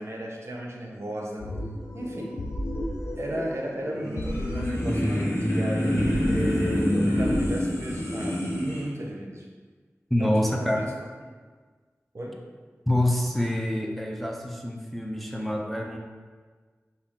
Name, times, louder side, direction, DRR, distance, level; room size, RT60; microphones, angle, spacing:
voice 1, 0.0-1.5 1.9-2.4 3.2-9.5 10.2-11.0 12.1-12.5, right 1 dB, 65° right, -1 dB, 0.7 m, -35 dB
sound 1, 1.4-7.5, left 1 dB, 80° left, 0.5 m, -34 dB
sound 2, 3.9-8.8, equal, 65° left, 1.1 m, -26 dB
voice 2, 10.1-10.8 12.9-16.0, left 1 dB, ahead, 1 dB, 0.4 m, -26 dB
5.1 x 2.7 x 3.6 m, 1.5 s
wide cardioid pair, 65°, 5 cm